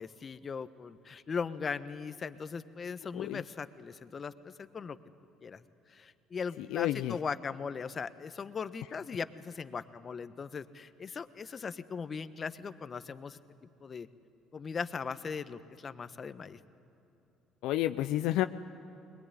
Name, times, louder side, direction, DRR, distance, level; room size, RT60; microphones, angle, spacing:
voice 1, 0.0-5.0 5.4-13.4 13.8-14.1 14.5-16.6, left 5 dB, 40° left, 12 dB, 1.1 m, -39 dB
voice 2, 6.6-7.2 17.6-18.4, left 14 dB, 70° left, 9 dB, 0.6 m, -30 dB
22.0 x 21.5 x 9.8 m, 2.9 s
hypercardioid pair, 60°, 0 cm